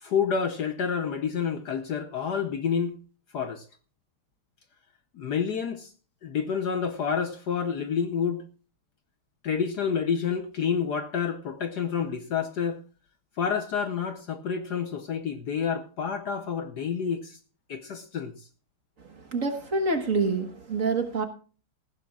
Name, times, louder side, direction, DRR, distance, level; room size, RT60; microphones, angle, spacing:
voice 1, 0.0-3.0 3.3-3.6 5.1-5.9 6.2-8.4 9.4-12.8 13.4-17.4 17.7-18.3, left 7 dB, 60° left, 8 dB, 1.2 m, -29 dB
voice 2, 19.3-21.3, right 3 dB, 40° right, 6 dB, 1.5 m, -26 dB
19.0 x 15.0 x 2.4 m, 0.39 s
omnidirectional pair, 2.4 m